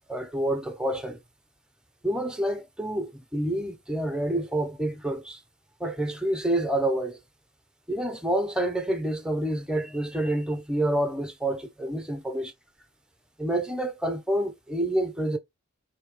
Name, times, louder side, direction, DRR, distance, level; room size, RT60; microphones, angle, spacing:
voice 1, 0.1-1.2 2.0-5.4 5.8-7.2 7.9-12.5 13.4-15.4, right 1 dB, 5° right, 0.6 m, -28 dB
4.3 x 2.8 x 3.2 m
head